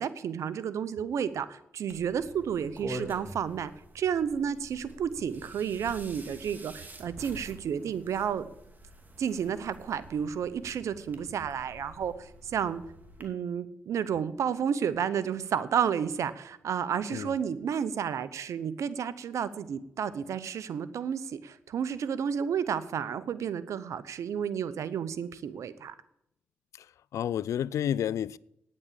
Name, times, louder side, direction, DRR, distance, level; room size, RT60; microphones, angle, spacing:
voice 1, 0.0-3.7 3.9-8.4 9.2-12.8 13.2-25.9, right 8 dB, 80° right, 0.8 m, -31 dB
sound 1, 1.9-13.3, right 1 dB, 35° right, 2.5 m, -47 dB
voice 2, 27.1-28.4, left 10 dB, 80° left, 0.3 m, -30 dB
9.6 x 8.6 x 8.6 m
cardioid pair, 55°, 5 cm